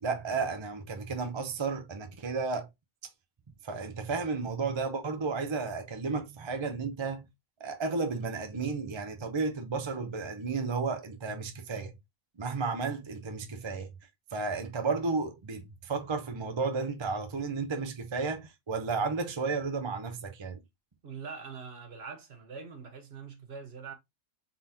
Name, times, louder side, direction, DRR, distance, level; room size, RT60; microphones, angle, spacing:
voice 1, 0.0-2.7 3.6-7.3 7.6-11.9 12.4-13.9 14.3-20.6, right 4 dB, 35° right, 0.4 m, -33 dB
voice 2, 21.0-23.9, right 5 dB, 50° right, 1.0 m, -43 dB
4.0 x 3.7 x 2.7 m
omnidirectional pair, 1.4 m